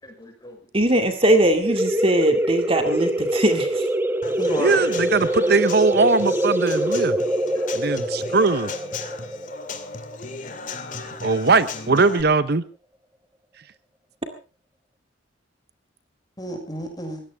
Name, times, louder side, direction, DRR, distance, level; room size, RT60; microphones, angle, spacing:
voice 1, 0.0-0.6 4.4-4.9 7.5-8.0 16.4-17.2, equal, 20° left, 4 dB, 5.9 m, -33 dB
voice 2, 0.7-3.9, right 1 dB, 30° right, 6 dB, 2.2 m, -20 dB
sound 1, 1.6-11.0, right 1 dB, 10° right, 1.1 m, -24 dB
Human voice / Acoustic guitar / Drum, 4.2-12.2, left 4 dB, 45° left, 2.4 m, -37 dB
voice 3, 4.6-7.2 7.7-8.7 11.2-12.6, right 3 dB, 55° right, 13 dB, 0.8 m, -20 dB
21.5 x 17.0 x 3.5 m, 0.34 s
head